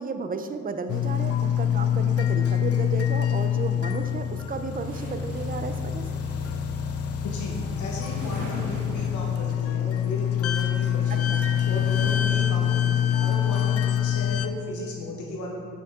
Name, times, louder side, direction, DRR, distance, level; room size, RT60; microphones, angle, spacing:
voice 1, 0.0-6.0 11.1-11.4, right 4 dB, 30° right, 9 dB, 0.5 m, -33 dB
sound 1, 0.9-14.5, left 9 dB, 50° left, 0.5 m, -25 dB
sound 2, 4.7-9.4 10.4-12.9, equal, 80° right, 1.6 m, -42 dB
voice 2, 7.2-15.5, left 2 dB, 80° left, -1 dB, 1.2 m, -35 dB
7.8 x 6.2 x 3.6 m, 2.4 s
cardioid pair, 90°, 30 cm